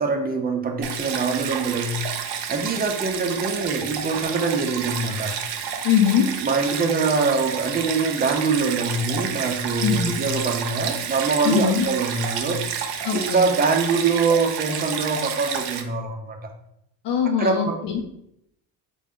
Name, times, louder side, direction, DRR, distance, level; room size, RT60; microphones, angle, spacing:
voice 1, 0.0-2.0 2.5-5.3 6.2-12.6 13.1-16.5 17.4-17.8, right 4 dB, 20° right, 3 dB, 0.5 m, -24 dB
Stream, 0.8-15.8, right 7 dB, 70° right, 0.6 m, -30 dB
voice 2, 5.8-6.3 9.8-10.1 11.4-11.9 13.0-13.5 17.0-18.0, left 8 dB, 70° left, 2 dB, 0.7 m, -21 dB
3.7 x 2.2 x 3.6 m, 0.78 s
cardioid pair, 100°, 43 cm